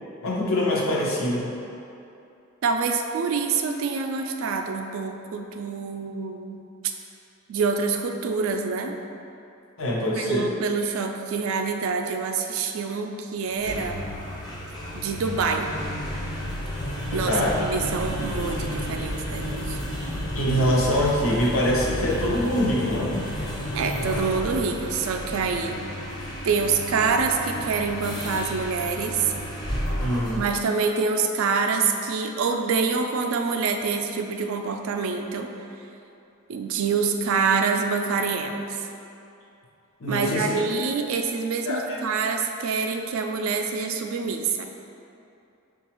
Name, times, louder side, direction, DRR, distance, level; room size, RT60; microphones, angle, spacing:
voice 1, 0.2-1.5 9.8-10.5 17.3-17.6 20.3-23.3 30.0-30.5 40.0-40.5 41.7-42.0, left 1 dB, 65° left, -3 dB, 0.7 m, -24 dB
voice 2, 2.6-6.6 7.5-8.9 10.1-14.1 14.9-15.8 17.1-19.8 23.7-25.8 26.4-29.3 30.3-35.5 36.5-38.9 40.1-44.6, right 5 dB, 75° right, 4 dB, 0.3 m, -26 dB
sound 1, 13.5-30.6, equal, 20° left, 0.5 m, -32 dB
5.9 x 2.3 x 2.9 m, 2.7 s
head